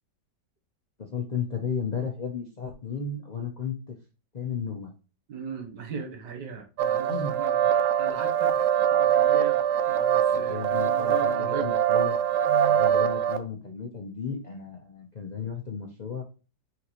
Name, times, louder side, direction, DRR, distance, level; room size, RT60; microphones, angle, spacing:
voice 1, 1.1-3.9 4.3-4.9 7.1-7.3 10.3-12.2 12.7-16.2, left 6 dB, 75° left, 0 dB, 0.4 m, -34 dB
voice 2, 5.3-8.5 8.9-9.6 9.9-11.7 12.5-12.8, right 5 dB, 75° right, 4 dB, 1.7 m, -38 dB
sound 1, 6.8-13.4, right 9 dB, 90° right, 0.7 m, -23 dB
4.4 x 3.9 x 2.9 m, 0.33 s
omnidirectional pair, 1.9 m